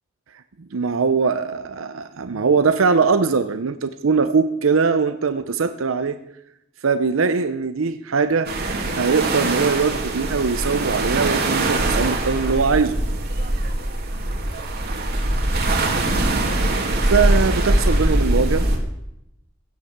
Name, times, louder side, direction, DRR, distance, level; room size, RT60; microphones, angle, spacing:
voice 1, 0.7-6.2 6.8-8.5 8.9-13.0 17.0-18.7, right 5 dB, 85° right, 10 dB, 0.7 m, -21 dB
sound 1, 8.4-18.8, right 1 dB, 55° right, 2.3 m, -22 dB
16.0 x 7.4 x 8.0 m, 0.83 s
head